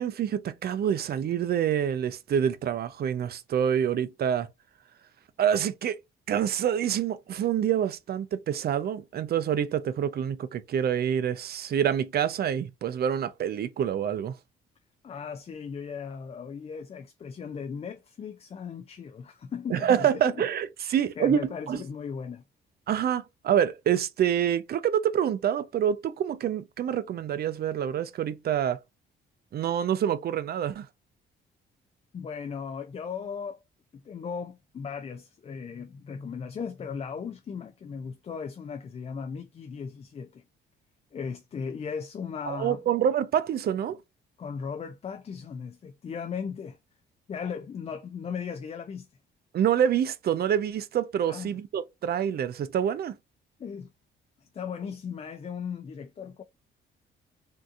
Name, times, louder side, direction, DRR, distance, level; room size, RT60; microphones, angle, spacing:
voice 1, 0.0-4.5 5.4-6.0 6.3-14.3 19.7-21.8 22.9-28.8 29.5-30.9 42.5-44.0 49.5-53.2, right 9 dB, 55° right, 0.5 m, -27 dB
voice 2, 15.0-20.5 20.8-22.4 32.1-33.6 33.9-40.4 41.1-42.8 44.4-46.8 47.3-49.1 51.3-51.6 53.6-53.9 54.4-56.4, left 6 dB, 30° left, 0.4 m, -37 dB
3.7 x 2.7 x 2.4 m
cardioid pair, 90°, 20 cm